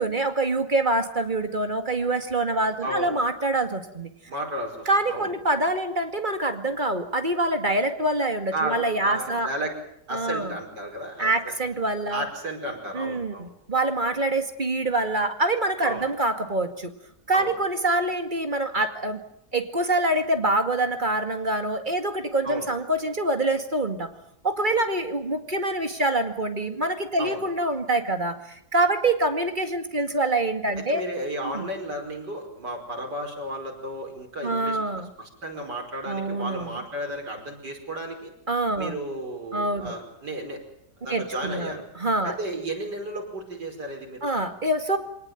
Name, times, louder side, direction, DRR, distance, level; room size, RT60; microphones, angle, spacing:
voice 1, 0.0-4.1 4.9-9.5 10.1-10.5 11.2-12.3 12.9-16.9 17.3-19.2 19.5-24.1 24.4-31.0 31.5-31.7 34.4-35.1 36.1-36.8 38.5-39.0 39.5-39.9 41.1-42.3 44.2-45.0, right 2 dB, 30° right, 7 dB, 2.3 m, -25 dB
voice 2, 2.8-3.2 4.3-5.3 8.5-9.7 10.1-11.6 12.1-13.5 15.8-16.0 17.3-17.5 22.4-22.7 27.2-27.4 30.8-34.8 35.2-38.3 38.8-40.6 41.0-41.8 42.2-44.3, right 1 dB, 90° right, 2 dB, 5.8 m, -33 dB
24.5 x 19.0 x 9.3 m, 0.74 s
omnidirectional pair, 1.8 m